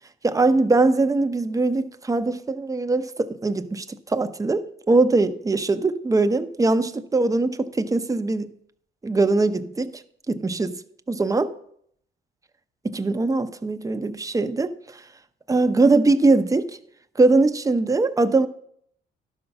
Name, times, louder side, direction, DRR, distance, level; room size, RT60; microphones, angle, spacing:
voice 1, 0.2-8.5 9.0-10.0 10.3-10.8 11.1-11.5 12.8-15.0 15.5-16.8 17.2-18.5, right 3 dB, 15° right, 0.7 m, -21 dB
11.5 x 5.4 x 5.8 m
cardioid pair, 90°, 20 cm